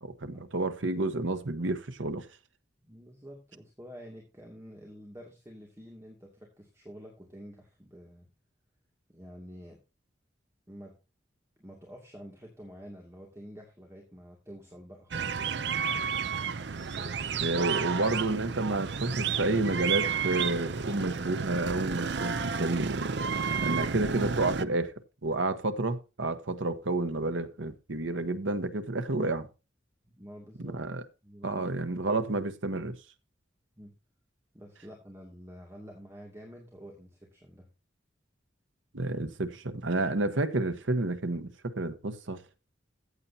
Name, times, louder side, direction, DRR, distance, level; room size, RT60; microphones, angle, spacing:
voice 1, 0.0-2.3 17.4-23.0 23.6-24.9 25.2-29.5 30.6-31.0 31.4-33.0 38.9-42.4, right 2 dB, 90° right, 1.3 m, -30 dB
voice 2, 2.8-8.3 9.1-9.8 10.7-11.0 11.6-15.5 16.9-17.4 30.0-30.7 31.2-31.9 33.8-33.9 34.5-37.7, equal, 15° right, 2.4 m, -49 dB
sound 1, 15.1-24.6, right 6 dB, 65° right, 0.6 m, -31 dB
14.5 x 8.3 x 2.8 m
head